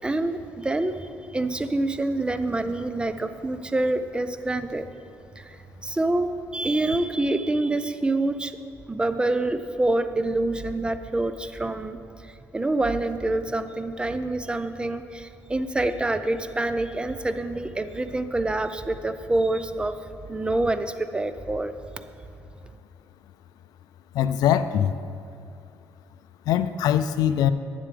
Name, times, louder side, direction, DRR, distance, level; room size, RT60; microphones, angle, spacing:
voice 1, 0.0-4.9 5.4-8.6 8.9-21.7, right 2 dB, 15° right, 11 dB, 0.4 m, -26 dB
voice 2, 24.1-24.9 26.5-27.5, left 10 dB, 85° left, 13 dB, 0.4 m, -22 dB
11.0 x 9.7 x 3.3 m, 2.4 s
cardioid pair, 110°, 7 cm